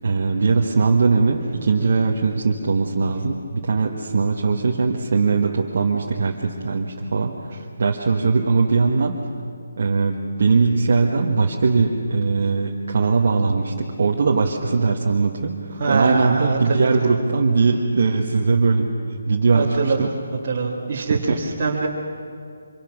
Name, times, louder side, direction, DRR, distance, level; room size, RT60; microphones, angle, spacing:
voice 1, 0.0-7.3 7.8-9.2 9.8-18.9 19.3-20.1 21.3-21.4, right 4 dB, 40° right, -1 dB, 1.5 m, -20 dB
voice 2, 15.8-16.9 19.5-20.1 20.4-21.9, right 4 dB, 25° right, -6 dB, 2.0 m, -24 dB
25.5 x 24.5 x 6.1 m, 2.2 s
hypercardioid pair, 180°, 0 cm